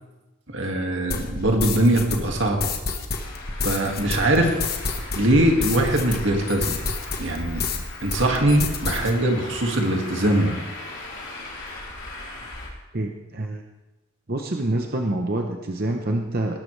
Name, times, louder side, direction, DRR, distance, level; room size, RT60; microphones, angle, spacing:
voice 1, 0.5-2.7 3.6-4.6 5.1-6.8 7.2-7.6 8.0-10.5, right 1 dB, 60° right, 2 dB, 2.0 m, -21 dB
sound 1, 1.1-7.8 8.1-9.1, left 4 dB, 45° left, 1.3 m, -29 dB
Traffic noise roadway noise, 3.1-12.7, left 2 dB, 60° left, 4.8 m, -38 dB
voice 2, 12.9-13.6 14.3-16.6, right 1 dB, 45° right, 3 dB, 0.8 m, -26 dB
19.5 x 11.5 x 3.3 m, 1.1 s
head